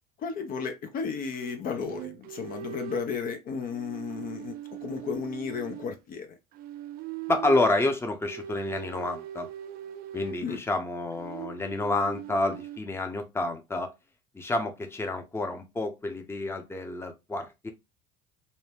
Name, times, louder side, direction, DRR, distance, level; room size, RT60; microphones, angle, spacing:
voice 1, 0.2-6.3 10.4-10.6, left 6 dB, 50° left, 0.6 m, -34 dB
sound 1, 1.3-3.2 3.7-6.0 6.5-7.7 8.2-10.5 11.1-12.8, right 12 dB, 55° right, 0.4 m, -41 dB
voice 2, 7.3-9.5 10.1-13.9 14.3-17.7, left 2 dB, 15° left, 0.7 m, -29 dB
2.7 x 2.1 x 3.3 m
hypercardioid pair, 80°, 19 cm